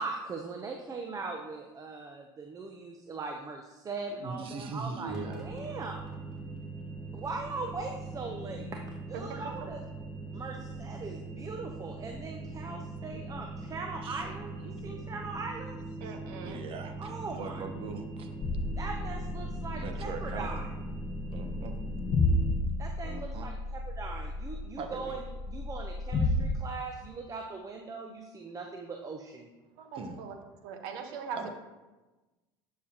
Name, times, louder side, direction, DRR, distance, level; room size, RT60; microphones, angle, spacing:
voice 1, 0.0-5.1 5.4-6.1 7.1-8.8 9.1-9.8 10.3-15.8 17.0-17.6 18.8-20.7 22.8-29.5, right 3 dB, 30° right, 3 dB, 0.8 m, -40 dB
voice 2, 4.2-5.5 14.0-14.3 16.4-18.3 19.7-20.7 21.3-21.8 23.0-23.5 24.8-25.2 29.9-30.2 31.3-31.5, right 4 dB, 45° right, 7 dB, 1.2 m, -40 dB
sound 1, 5.1-22.5, right 2 dB, 5° right, 2.1 m, -41 dB
voice 3, 16.0-16.6 29.8-30.3 30.6-31.5, right 6 dB, 75° right, 5 dB, 1.3 m, -41 dB
sound 2, 18.4-26.6, left 2 dB, 45° left, 1.3 m, -32 dB
11.0 x 6.6 x 3.0 m, 1.1 s
supercardioid pair, 95°, 12 cm